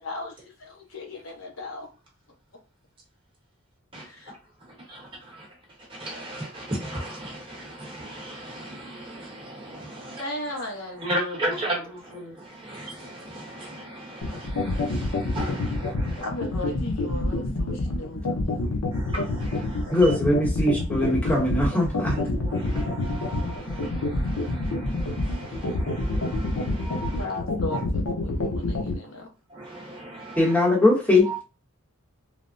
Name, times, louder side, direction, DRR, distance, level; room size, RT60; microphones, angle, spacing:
voice 1, 0.0-1.9 10.2-11.3 11.6-11.8 12.2-12.4 16.2-18.8 27.2-29.3, left 2 dB, 60° left, 0.9 m, -36 dB
voice 2, 3.9-4.4 4.8-16.3 17.5-17.6 18.9-20.2 21.0-21.2 21.7-21.8 22.1-27.3 27.7-27.8 29.5-30.6 31.2-31.4, right 1 dB, 25° right, 0.9 m, -36 dB
sound 1, 14.2-28.9, left 2 dB, 85° left, 0.6 m, -27 dB
voice 3, 19.9-22.2 30.4-31.3, left 2 dB, 5° left, 0.8 m, -21 dB
3.2 x 2.0 x 2.5 m
head